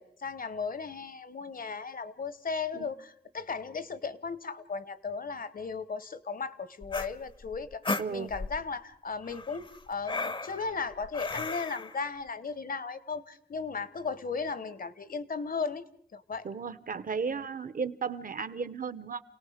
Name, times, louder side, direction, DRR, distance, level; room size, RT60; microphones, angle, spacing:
voice 1, 0.0-15.8 16.1-16.5 17.3-17.4, left 4 dB, 60° left, 15 dB, 1.1 m, -36 dB
sound 1, 6.8-8.6 9.3-11.9, left 3 dB, 30° left, 0.7 m, -36 dB
voice 2, 8.0-8.3 16.4-19.2, right 5 dB, 55° right, 14 dB, 1.0 m, -34 dB
29.0 x 18.0 x 5.1 m, 0.63 s
wide cardioid pair, 80°, 17 cm